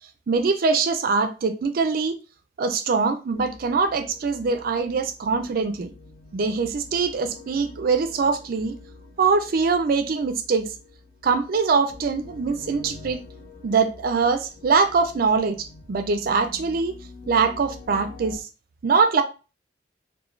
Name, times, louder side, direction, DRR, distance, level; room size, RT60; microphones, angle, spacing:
voice 1, 0.3-2.2 2.6-5.9 6.3-8.7 9.2-10.7 11.2-13.2 13.6-16.9 17.3-18.5 18.8-19.2, right 4 dB, 50° right, 0.4 m, -23 dB
sound 1, 3.3-18.4, left 3 dB, 55° left, 0.7 m, -45 dB
3.0 x 2.2 x 2.4 m
head